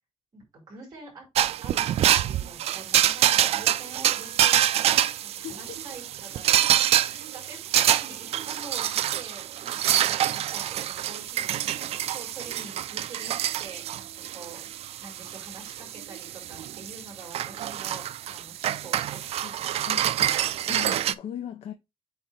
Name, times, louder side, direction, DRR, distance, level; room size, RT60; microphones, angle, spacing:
voice 1, 0.3-1.2 1.6-4.6 4.8-14.6 15.0-19.2, right 3 dB, 40° right, 4.2 m, -46 dB
sound 1, 1.3-21.1, right 11 dB, 85° right, 0.4 m, -26 dB
voice 2, 5.4-5.8 19.4-19.5 19.8-21.7, left 10 dB, 90° left, 0.6 m, -39 dB
8.4 x 3.3 x 4.4 m
wide cardioid pair, 175°, 10 cm